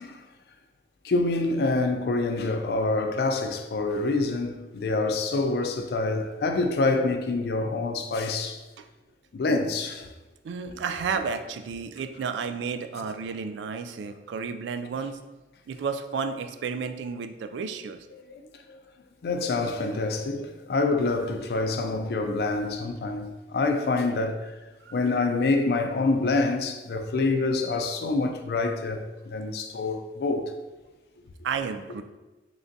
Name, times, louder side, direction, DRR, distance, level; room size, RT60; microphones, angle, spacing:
voice 1, 1.0-8.6 9.3-10.1 18.3-18.4 18.7-18.8 19.2-24.5 24.9-30.5, left 3 dB, 60° left, 0.4 m, -26 dB
voice 2, 10.4-15.2 15.7-18.1 24.8-25.0 31.4-32.0, right 5 dB, 85° right, 0.3 m, -32 dB
3.8 x 3.3 x 2.6 m
head